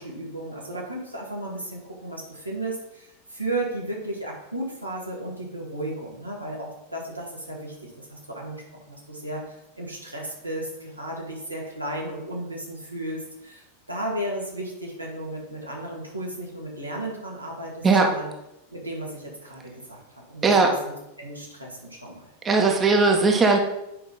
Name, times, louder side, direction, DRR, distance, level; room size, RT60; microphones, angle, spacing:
voice 1, 0.0-18.3 18.7-22.3, right 1 dB, 90° right, -3 dB, 2.0 m, -34 dB
voice 2, 20.4-20.8 22.4-23.6, right 3 dB, 20° right, 2 dB, 1.1 m, -18 dB
8.4 x 5.1 x 4.0 m, 0.87 s
figure-of-eight pair, 90°, 0 cm